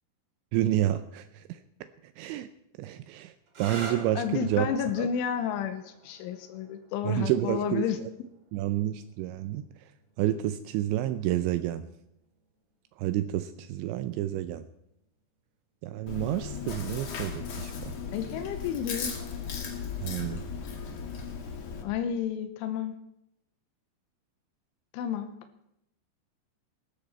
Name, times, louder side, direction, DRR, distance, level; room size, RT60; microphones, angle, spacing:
voice 1, 0.5-1.6 2.2-2.5 2.8-4.7 5.0-5.1 7.0-7.9 8.5-9.7 10.2-11.9 13.0-14.6 15.8-17.9 20.0-20.4, right 13 dB, 80° right, 11 dB, 2.9 m, -29 dB
sound 1, 3.5-10.9 11.9-12.4 15.9-16.3, right 3 dB, 40° right, 2.7 m, -46 dB
voice 2, 4.2-8.0 18.1-19.2 21.8-23.0 24.9-25.4, left 8 dB, 85° left, 8 dB, 3.4 m, -31 dB
Chewing mastication, 16.1-21.8, left 6 dB, 50° left, 2.0 m, -36 dB
19.0 x 13.5 x 4.3 m, 0.80 s
omnidirectional pair, 5.4 m